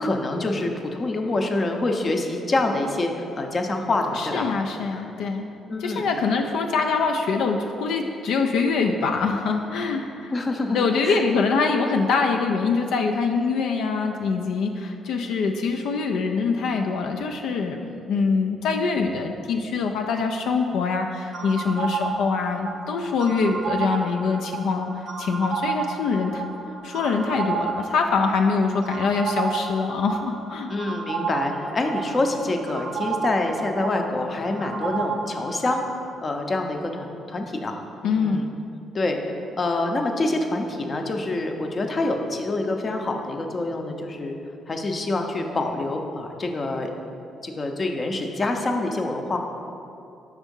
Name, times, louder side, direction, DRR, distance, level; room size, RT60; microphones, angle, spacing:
voice 1, 0.0-4.5 5.7-6.1 10.3-11.2 30.7-35.8 36.2-37.8 38.0-38.5 38.9-44.4 44.7-46.9 47.4-49.4, left 2 dB, 35° left, 3 dB, 0.6 m, -26 dB
voice 2, 4.2-5.4 5.8-10.3 10.7-26.5 26.8-30.7 38.0-38.5, left 4 dB, 85° left, 3 dB, 0.3 m, -24 dB
sound 1, 21.3-36.1, right 5 dB, 55° right, 0.5 m, -32 dB
5.4 x 3.5 x 5.3 m, 2.7 s
cardioid pair, 90°, 0 cm